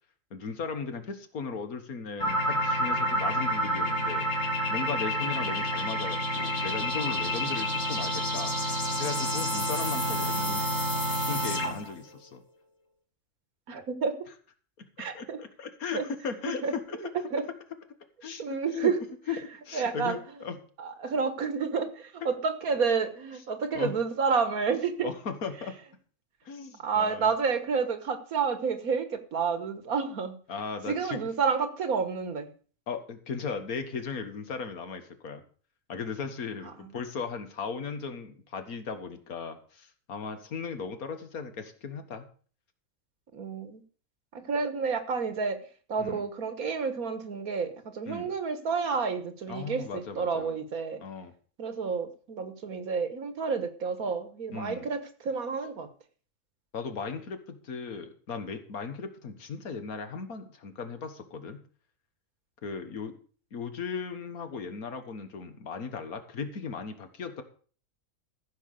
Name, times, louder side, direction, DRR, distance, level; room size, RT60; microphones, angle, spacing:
voice 1, 0.3-4.3 4.7-8.5 9.0-10.7 11.2-12.4 15.1-17.1 18.2-18.9 19.3-19.4 19.7-20.6 22.2-22.3 23.7-24.0 25.0-25.8 26.5-27.3 30.5-31.2 32.9-35.4 35.9-42.3 46.0-46.2 48.1-48.3 49.5-50.6 51.0-51.3 54.5-54.9 56.7-61.6 62.6-63.2 63.5-67.4, left 5 dB, 80° left, 8 dB, 1.9 m, -37 dB
sound 1, 2.2-11.9, equal, 50° left, 2.3 m, -29 dB
voice 2, 13.7-14.3 15.0-15.4 15.9-16.0 16.6-16.7 17.2-17.5 18.4-19.0 19.7-20.2 20.8-25.1 26.8-30.4 30.9-32.5 43.3-43.8 44.3-45.6 45.9-51.0 51.6-55.9, right 5 dB, 80° right, 10 dB, 1.9 m, -30 dB
14.5 x 5.9 x 6.7 m, 0.42 s
omnidirectional pair, 1.5 m